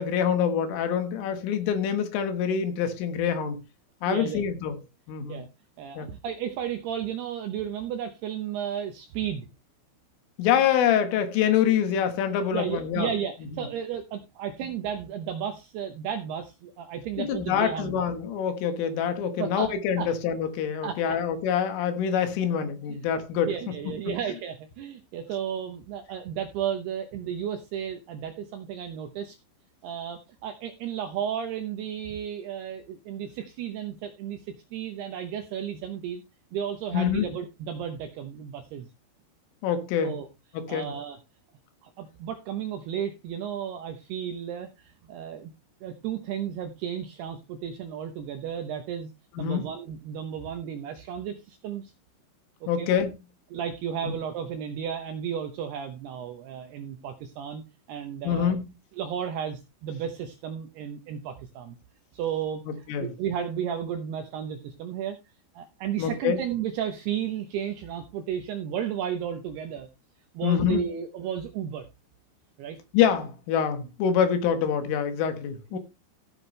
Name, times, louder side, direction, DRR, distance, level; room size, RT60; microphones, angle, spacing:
voice 1, 0.0-3.6 4.0-4.8 5.1-5.4 6.0-6.1 10.4-13.1 13.5-13.7 17.2-23.5 23.9-24.2 36.9-37.3 39.6-40.2 40.6-40.9 49.4-49.7 52.7-53.1 54.0-54.1 58.2-58.7 62.7-63.1 66.0-66.4 70.4-70.8 72.9-75.8, left 8 dB, 80° left, 4.0 m, -26 dB
voice 2, 4.1-4.4 5.3-5.5 5.8-9.5 12.1-12.3 12.5-18.0 19.4-19.7 20.0-20.1 20.8-21.2 22.9-23.0 23.4-29.4 29.8-36.2 36.5-38.9 40.0-40.3 40.7-41.2 41.8-45.5 45.8-49.1 49.4-51.9 52.8-52.9 53.5-57.6 57.9-58.6 59.0-61.8 62.1-65.2 65.6-69.9 70.3-71.9 72.6-72.8 75.7-75.8, right 9 dB, 80° right, 2.4 m, -33 dB
15.0 x 8.0 x 3.2 m
omnidirectional pair, 5.7 m